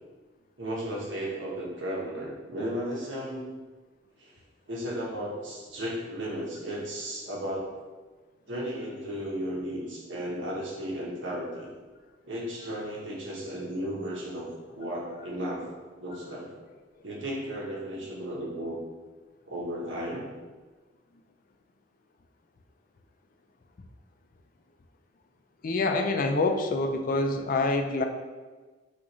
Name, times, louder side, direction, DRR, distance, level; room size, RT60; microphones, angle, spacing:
voice 1, 0.6-3.4 4.2-4.3 4.7-7.7 8.5-11.7 12.2-15.7 16.0-16.5 17.0-18.8 19.5-20.3, equal, 85° right, -3 dB, 1.1 m, -34 dB
voice 2, 25.6-28.0, left 3 dB, 50° left, 5 dB, 0.4 m, -26 dB
6.1 x 2.5 x 3.0 m, 1.3 s
head